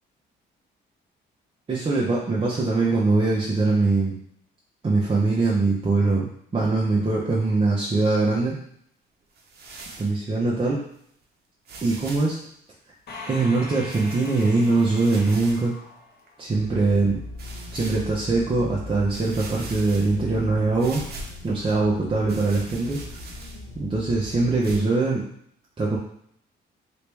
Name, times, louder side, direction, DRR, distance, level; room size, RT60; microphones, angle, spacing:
voice 1, 1.7-4.2 4.8-8.6 10.0-10.8 11.8-12.4 13.3-15.7 16.4-17.2 17.7-21.0 21.4-23.0 23.7-25.3 25.8-26.0, right 3 dB, 25° right, -6 dB, 0.8 m, -22 dB
sound 1, 9.3-10.2 10.9-11.0 11.6-12.4 13.9-15.7 16.3-16.4 17.4-18.1 18.7-18.8 19.1-20.4 20.8-21.5 22.3-23.7 24.6-24.8, right 3 dB, 55° right, 0.8 m, -41 dB
sound 2, 13.1-16.7, left 2 dB, 55° left, 1.1 m, -41 dB
sound 3, 16.5-24.6, left 2 dB, 85° left, 0.7 m, -39 dB
3.0 x 2.9 x 3.4 m, 0.68 s
cardioid pair, 90°, 20 cm